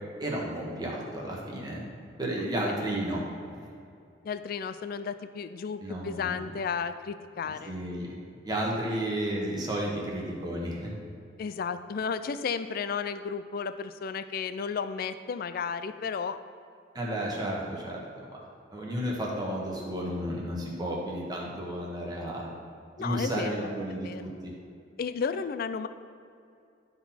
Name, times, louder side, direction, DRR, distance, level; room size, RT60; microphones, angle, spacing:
voice 1, 0.2-1.9 2.2-3.2 3.6-3.7 5.8-6.5 7.4-8.2 8.4-11.0 16.9-18.4 18.7-22.5 23.0-24.5, right 1 dB, 20° right, -3 dB, 1.3 m, -32 dB
voice 2, 4.2-7.7 11.4-16.4 23.0-23.7 24.0-24.2 25.0-25.9, left 6 dB, 50° left, 12 dB, 0.3 m, -33 dB
11.5 x 3.9 x 4.2 m, 2.4 s
head